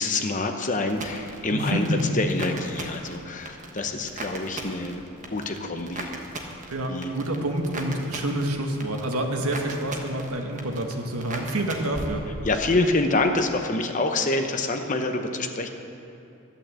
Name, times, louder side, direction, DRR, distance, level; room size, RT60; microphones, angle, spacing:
voice 1, 0.0-1.9 2.1-5.0 5.3-6.1 6.9-7.1 12.4-15.7, left 2 dB, 35° left, 5 dB, 0.8 m, -26 dB
sound 1, 0.9-12.8 13.1-13.7, right 2 dB, 35° right, 1.2 m, -39 dB
voice 2, 1.5-2.2 6.7-12.2, right 1 dB, 85° right, 3 dB, 1.4 m, -28 dB
12.0 x 9.0 x 7.7 m, 2.7 s
head